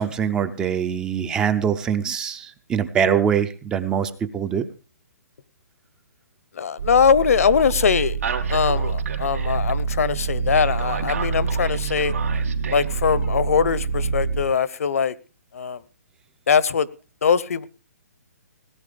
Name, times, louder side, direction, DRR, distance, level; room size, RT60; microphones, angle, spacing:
voice 1, 0.0-4.6, right 8 dB, 10° right, 0.6 m, -23 dB
voice 2, 6.5-8.2 8.5-12.1 12.7-15.2 15.5-15.8 16.5-16.9 17.2-17.7, left 6 dB, 60° left, 1.0 m, -21 dB
sound 1, 6.8-14.4, right 5 dB, 65° right, 3.3 m, -26 dB
18.0 x 9.5 x 5.1 m
hypercardioid pair, 165°, 9 cm